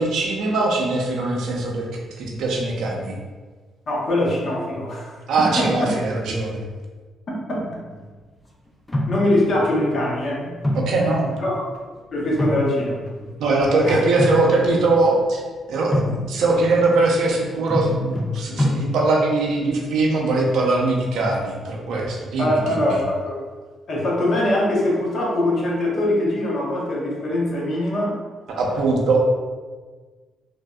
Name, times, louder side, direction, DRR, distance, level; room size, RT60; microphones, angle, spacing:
voice 1, 0.0-3.2 5.3-6.6 10.7-11.3 13.4-15.4 15.7-23.0 28.5-29.2, right 2 dB, 80° right, -1 dB, 0.5 m, -21 dB
voice 2, 3.9-5.9 7.3-7.8 9.1-10.6 11.4-11.6 12.1-13.0 13.8-14.0 22.4-23.4 23.9-28.1, left 1 dB, 55° left, -4 dB, 0.8 m, -22 dB
sound 1, 7.5-8.0 8.9-9.6 10.6-11.8 12.2-13.3 14.0-14.9 15.9-16.6 17.7-19.3, left 1 dB, 20° left, 0.4 m, -26 dB
3.3 x 2.5 x 2.2 m, 1.4 s
cardioid pair, 90°, 0 cm